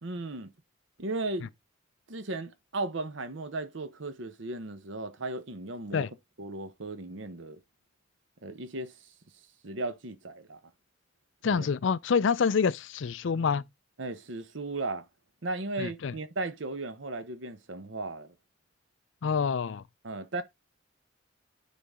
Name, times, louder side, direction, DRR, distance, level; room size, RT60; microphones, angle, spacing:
voice 1, 0.0-0.5 1.0-1.5 2.1-6.1 6.4-7.6 8.4-9.1 9.6-10.6 11.4-11.7 14.0-15.1 15.4-18.3 20.0-20.4, right 2 dB, 65° right, 0.9 m, -36 dB
voice 2, 11.4-13.6 15.8-16.1 19.2-19.8, left 6 dB, 65° left, 0.4 m, -27 dB
9.5 x 4.0 x 3.6 m
head